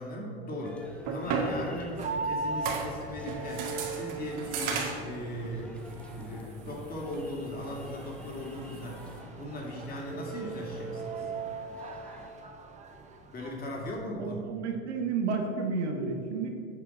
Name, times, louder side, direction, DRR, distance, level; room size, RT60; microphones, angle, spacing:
voice 1, 0.0-5.8 6.1-11.3 13.3-14.4, left 1 dB, 25° left, -1 dB, 2.5 m, -38 dB
sound 1, 0.6-12.3, left 1 dB, 5° left, 0.9 m, -52 dB
sound 2, 0.7-9.2, right 4 dB, 55° right, 1.9 m, -37 dB
sound 3, 2.0-13.9, right 4 dB, 20° right, 1.0 m, -39 dB
voice 2, 14.2-16.5, right 4 dB, 85° right, 3 dB, 1.7 m, -31 dB
8.7 x 5.0 x 7.6 m, 2.4 s
hypercardioid pair, 110°, 33 cm